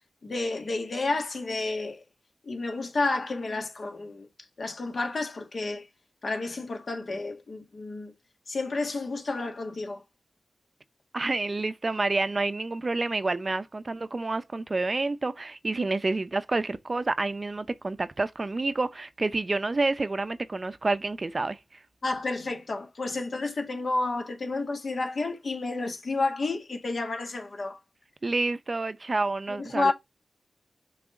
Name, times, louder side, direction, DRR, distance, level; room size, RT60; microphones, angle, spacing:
voice 1, 0.2-2.0 2.4-4.3 4.6-5.9 6.2-8.1 8.5-10.0 15.8-15.9 22.0-27.8 29.5-29.9, left 3 dB, 65° left, 1.6 m, -30 dB
voice 2, 11.1-21.6 28.2-29.9, right 3 dB, 45° right, 0.6 m, -28 dB
6.2 x 3.4 x 5.9 m
cardioid pair, 55°, 0 cm